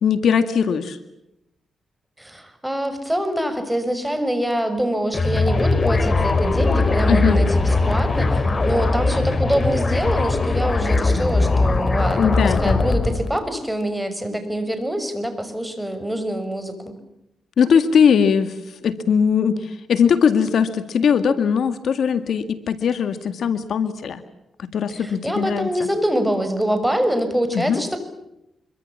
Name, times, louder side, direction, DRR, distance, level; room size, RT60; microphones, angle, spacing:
voice 1, 0.0-1.0 7.1-7.4 12.1-12.8 17.6-18.5 18.8-24.2 24.7-25.7 27.5-27.8, left 7 dB, 75° left, 11 dB, 1.9 m, -19 dB
voice 2, 2.2-16.9 24.9-28.0, equal, 5° right, 9 dB, 6.4 m, -25 dB
sound 1, 5.1-13.4, left 3 dB, 40° left, 3.2 m, -20 dB
25.5 x 24.5 x 7.4 m, 0.85 s
cardioid pair, 60°, 0 cm